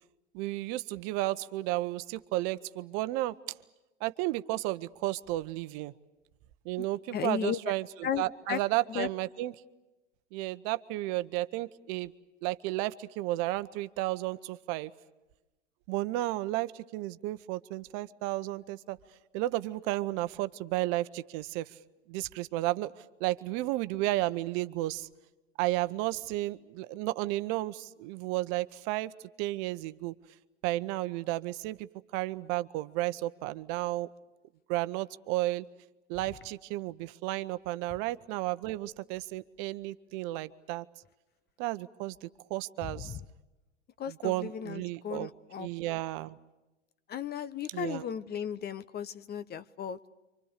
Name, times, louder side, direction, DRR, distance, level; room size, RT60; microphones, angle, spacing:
voice 1, 0.3-3.3 4.0-5.9 6.6-9.5 10.3-12.1 12.4-14.9 15.9-19.0 19.3-21.7 22.1-22.9 23.2-25.1 25.6-29.1 29.4-30.1 30.6-31.9 32.1-34.1 34.7-35.6 36.1-40.8 41.6-43.2 44.1-45.3 45.6-46.4 47.7-48.1, right 17 dB, 50° right, 13 dB, 1.1 m, -33 dB
voice 2, 7.1-7.6 8.0-8.6 8.9-9.1 43.0-43.2 44.0-45.7 47.1-50.1, left 8 dB, 30° left, 15 dB, 1.0 m, -35 dB
29.0 x 26.0 x 6.7 m, 1.1 s
hypercardioid pair, 100°, 35 cm